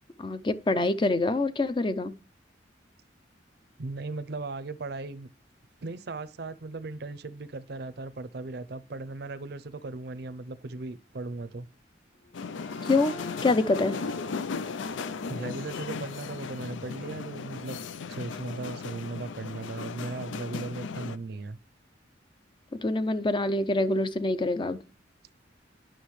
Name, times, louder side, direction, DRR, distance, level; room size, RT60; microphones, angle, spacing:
voice 1, 0.2-2.1 12.9-13.1 13.4-13.9 22.7-24.8, left 2 dB, 25° left, 0.5 m, -25 dB
voice 2, 3.8-5.3 5.8-11.7 15.3-17.8 18.1-21.6, right 3 dB, 60° right, 0.6 m, -37 dB
sound 1, 12.2-17.7, left 2 dB, 60° left, 1.4 m, -47 dB
sound 2, 12.3-21.2, left 5 dB, 85° left, 0.4 m, -36 dB
10.0 x 6.2 x 3.2 m
head